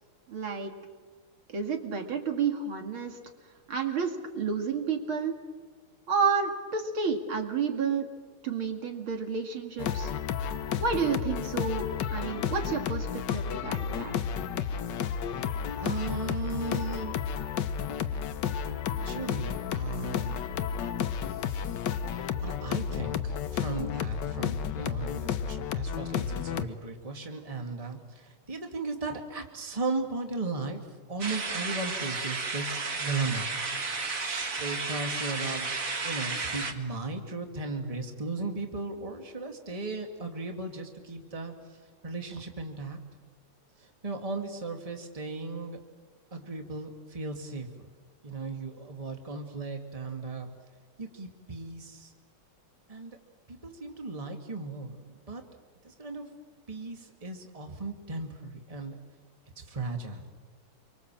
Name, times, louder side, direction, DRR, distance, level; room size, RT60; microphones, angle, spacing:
voice 1, 0.3-0.7 1.5-3.2 3.7-5.4 6.1-8.1 8.4-10.1 10.8-13.1 13.3-14.1, right 5 dB, 70° right, 4 dB, 2.9 m, -30 dB
sound 1, 9.8-26.7, left 8 dB, 60° left, 1.4 m, -32 dB
voice 2, 15.8-17.2 19.0-20.4 21.4-21.7 22.3-30.8 31.1-33.4 34.2-35.7 36.0-41.5 42.0-43.0 44.0-45.8 46.3-47.7 48.2-50.5 51.0-52.1 52.9-53.2 53.5-55.0 55.3-55.4 55.8-56.3 56.7-59.0 59.7-60.3, right 3 dB, 15° right, 4 dB, 2.1 m, -36 dB
sound 2, 31.2-36.7, right 4 dB, 40° right, 2.1 m, -33 dB
27.0 x 24.5 x 7.6 m, 1.5 s
omnidirectional pair, 2.4 m